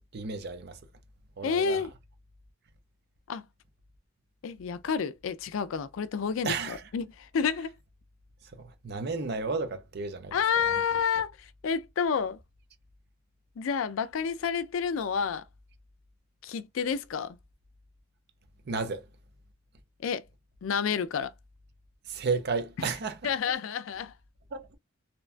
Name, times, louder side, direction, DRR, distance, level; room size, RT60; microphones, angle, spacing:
voice 1, 0.1-0.8 1.4-1.8 6.4-6.8 8.5-10.4 10.7-10.8 18.7-19.0 22.1-23.3 24.5-24.7, right 4 dB, 55° right, 0.6 m, -33 dB
voice 2, 1.4-1.9 3.3-3.5 4.4-7.7 10.3-12.4 13.6-15.4 16.4-17.4 20.0-20.2 20.6-21.3 23.2-24.1, left 6 dB, 90° left, 0.4 m, -29 dB
2.8 x 2.2 x 2.4 m
head